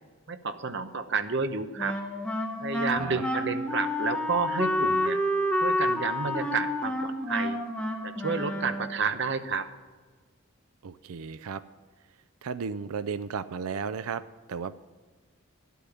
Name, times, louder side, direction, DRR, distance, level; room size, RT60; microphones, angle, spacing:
voice 1, 0.3-2.0 2.6-5.2 5.6-7.6 8.0-9.7, right 4 dB, 55° right, 9 dB, 0.9 m, -30 dB
Wind instrument woodwind instrument, 1.8-9.1, left 1 dB, 5° left, 1.1 m, -29 dB
voice 2, 2.9-3.2 10.8-11.6 12.4-14.2 14.5-14.7, right 6 dB, 85° right, 13 dB, 0.4 m, -34 dB
11.5 x 8.5 x 7.0 m, 1.4 s
head